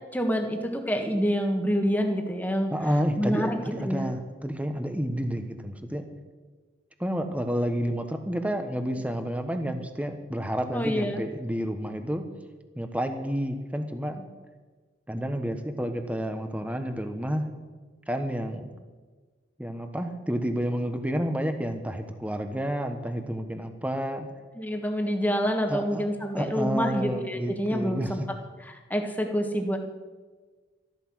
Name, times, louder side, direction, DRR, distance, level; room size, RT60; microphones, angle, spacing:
voice 1, 0.1-2.7 3.2-3.6 3.8-4.1 10.7-11.2 24.5-28.2 28.6-29.8, equal, 10° left, 4 dB, 1.5 m, -27 dB
voice 2, 2.7-6.1 7.0-12.3 12.8-14.3 15.1-17.5 18.1-18.7 19.6-24.3 25.7-26.1 26.3-28.3, equal, 10° right, 7 dB, 1.1 m, -30 dB
13.5 x 12.0 x 6.3 m, 1.4 s
head